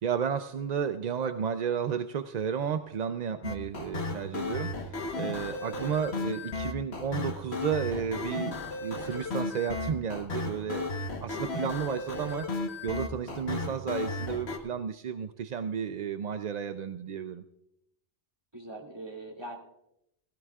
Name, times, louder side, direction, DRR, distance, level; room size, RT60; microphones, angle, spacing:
voice 1, 0.0-10.9 11.2-12.5 12.8-17.4, right 7 dB, 55° right, 9 dB, 0.5 m, -32 dB
sound 1, 3.4-14.6, left 3 dB, 60° left, 1.5 m, -34 dB
voice 2, 11.3-11.7 18.5-19.6, right 1 dB, 20° right, -2 dB, 2.3 m, -43 dB
17.0 x 16.0 x 2.4 m, 0.81 s
omnidirectional pair, 1.2 m